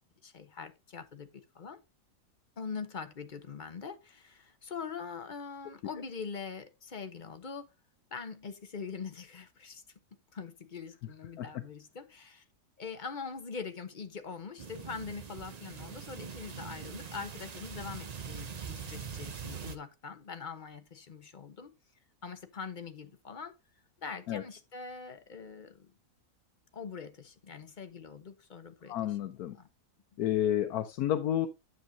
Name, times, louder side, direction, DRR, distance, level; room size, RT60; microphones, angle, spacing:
voice 1, 0.2-1.8 2.6-7.7 8.1-9.8 10.3-12.4 12.8-21.7 22.2-23.6 24.0-25.9 26.7-29.2 29.5-29.7, left 5 dB, 40° left, 0.9 m, -43 dB
sound 1, 14.6-19.8, right 6 dB, 45° right, 0.5 m, -43 dB
voice 2, 28.9-29.6 30.2-31.5, left 11 dB, 85° left, 1.2 m, -30 dB
9.6 x 7.7 x 2.7 m
omnidirectional pair, 1.6 m